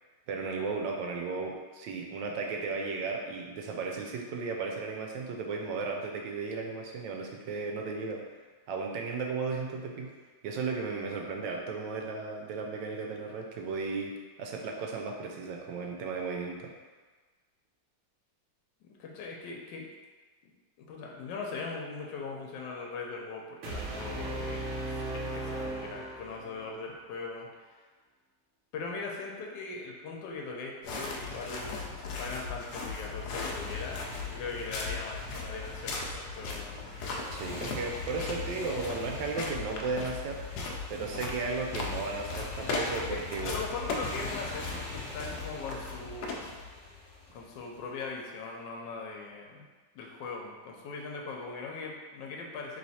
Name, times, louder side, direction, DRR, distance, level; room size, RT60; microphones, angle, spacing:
voice 1, 0.3-8.2 8.7-10.1 10.4-14.1 14.4-16.7 37.3-40.4 40.9-43.6, right 4 dB, 90° right, 1 dB, 1.3 m, -35 dB
voice 2, 18.8-19.9 20.8-24.6 25.1-27.5 28.7-36.9 43.1-46.6 47.3-49.7 49.9-52.8, left 4 dB, 90° left, 0 dB, 1.3 m, -40 dB
sound 1, 23.6-26.7, right 1 dB, 55° right, 0.9 m, -36 dB
sound 2, 30.8-46.9, left 3 dB, 70° left, 1.1 m, -38 dB
Motorcycle, 32.9-48.1, left 2 dB, 50° left, 1.0 m, -45 dB
3.2 x 3.1 x 4.1 m, 1.4 s
omnidirectional pair, 1.9 m